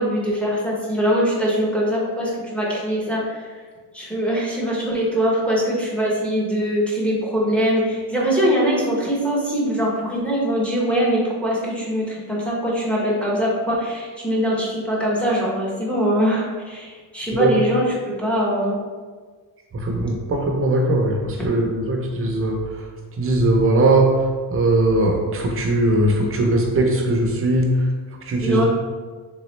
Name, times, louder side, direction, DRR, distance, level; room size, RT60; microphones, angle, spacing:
voice 1, 0.0-3.6 3.9-18.8 28.4-28.6, equal, 5° left, -6 dB, 0.7 m, -22 dB
voice 2, 19.7-22.9 23.2-24.1 24.5-27.7 28.3-28.6, right 2 dB, 35° right, 1 dB, 0.6 m, -20 dB
3.4 x 3.1 x 3.1 m, 1.5 s
cardioid pair, 155°, 41 cm